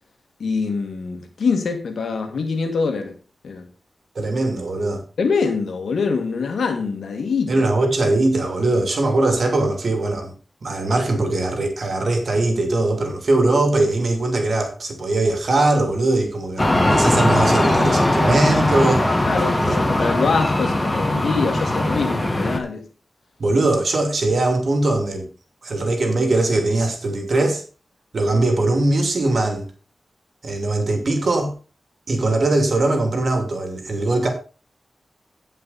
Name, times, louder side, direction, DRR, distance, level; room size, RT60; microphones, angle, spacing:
voice 1, 0.4-3.1 3.4-3.7 5.2-7.5 19.3-22.9, left 5 dB, 90° left, 1.9 m, -24 dB
voice 2, 4.1-5.0 7.5-10.3 10.6-19.1 19.6-19.8 23.4-25.3 25.6-27.6 28.1-29.7 30.4-31.5 32.1-34.3, right 2 dB, 65° right, 2.8 m, -20 dB
sound 1, 16.6-22.6, left 1 dB, 25° left, 2.0 m, -19 dB
15.5 x 5.5 x 4.2 m
cardioid pair, 65°, 0 cm